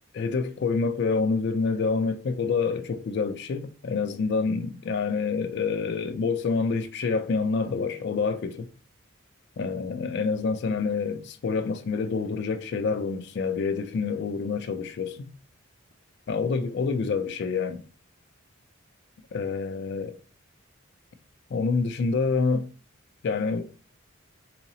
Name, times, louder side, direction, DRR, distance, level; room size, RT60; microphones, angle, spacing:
voice 1, 0.1-8.7 9.6-15.3 16.3-17.8 19.3-20.2 21.5-22.7 23.2-23.7, left 4 dB, 50° left, 0.3 m, -27 dB
3.8 x 2.8 x 2.7 m
head